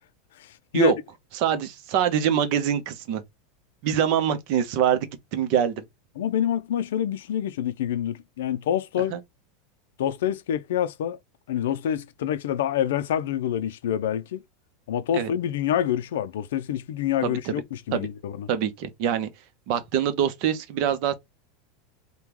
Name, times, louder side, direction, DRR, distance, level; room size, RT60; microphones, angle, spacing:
voice 1, 0.4-0.9 6.2-9.1 10.0-11.2 11.5-14.4 14.9-18.5, left 10 dB, 85° left, 0.5 m, -27 dB
voice 2, 1.3-3.2 3.8-5.8 9.1-9.2 15.1-15.3 17.2-17.5 17.9-18.1 18.5-19.3 19.7-21.1, right 8 dB, 50° right, 0.8 m, -24 dB
3.6 x 2.3 x 3.0 m
supercardioid pair, 155°, 0 cm